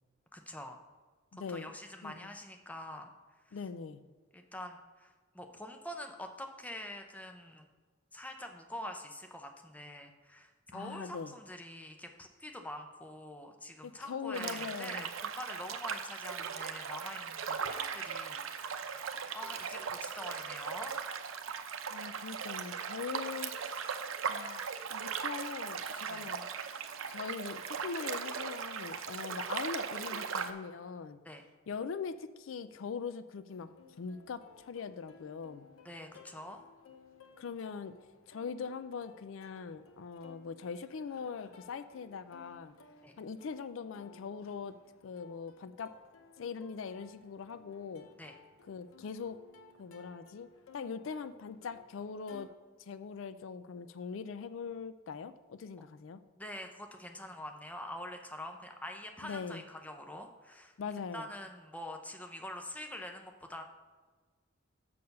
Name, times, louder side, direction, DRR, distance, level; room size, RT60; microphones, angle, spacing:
voice 1, 0.3-0.8 1.3-3.1 3.5-3.6 4.3-7.7 8.1-20.9 26.1-26.3 31.2-31.4 35.8-36.6 43.0-43.2 48.2-48.3 56.3-60.7 61.1-63.6, left 1 dB, 5° left, 4 dB, 0.6 m, -45 dB
voice 2, 1.3-1.7 2.0-2.3 3.5-4.0 10.7-11.3 13.8-15.1 21.9-23.8 24.3-26.5 27.1-31.2 31.7-35.7 37.4-38.0 38.3-42.7 43.2-44.7 45.0-45.9 46.4-48.1 48.7-49.4 49.8-50.5 50.7-52.5 52.8-56.2 59.2-59.6 60.8-61.3, left 5 dB, 70° left, 13 dB, 0.4 m, -41 dB
sound 1, 14.3-30.5, right 6 dB, 80° right, 0.6 m, -38 dB
Plucked string instrument, 33.5-52.5, left 4 dB, 90° left, 0.8 m, -59 dB
6.9 x 6.7 x 5.3 m, 1.4 s
head